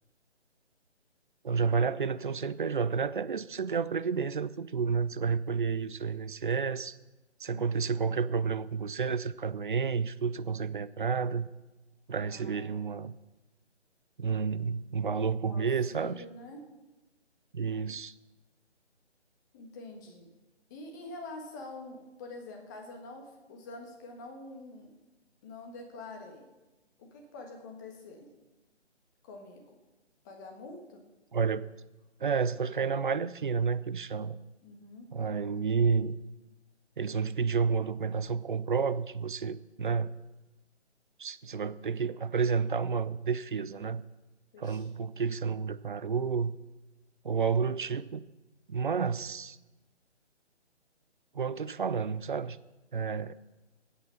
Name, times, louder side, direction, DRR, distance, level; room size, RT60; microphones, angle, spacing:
voice 1, 1.4-6.9 7.4-11.5 12.1-13.1 14.2-16.2 17.5-18.1 31.3-31.7 32.2-34.4 35.1-36.2 37.0-40.1 41.2-44.0 44.6-46.6 47.2-48.2 48.7-49.6 51.3-52.6 52.9-53.3, right 5 dB, 45° right, 15 dB, 0.5 m, -30 dB
voice 2, 12.2-12.8 15.4-16.6 19.5-20.3 20.7-24.9 25.4-26.5 27.0-28.3 29.2-29.6 30.2-31.0 34.6-35.1 44.5-44.8, left 2 dB, 15° left, 2 dB, 1.4 m, -46 dB
13.5 x 8.2 x 5.8 m, 1.1 s
figure-of-eight pair, 150°, 35 cm